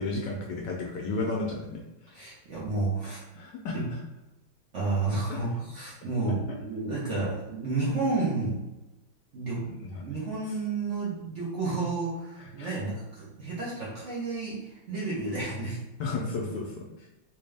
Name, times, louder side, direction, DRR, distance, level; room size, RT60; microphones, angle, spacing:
voice 1, 0.0-2.2 3.0-4.0 5.3-5.4 9.5-10.1 10.5-10.6 12.4-12.7 14.9-15.1 16.0-17.1, left 3 dB, 75° left, -1 dB, 1.1 m, -34 dB
voice 2, 2.1-3.2 3.7-3.8 4.7-8.6 9.3-9.6 10.0-15.8, right 3 dB, 50° right, -7 dB, 0.9 m, -31 dB
3.4 x 2.8 x 3.3 m, 0.99 s
omnidirectional pair, 2.2 m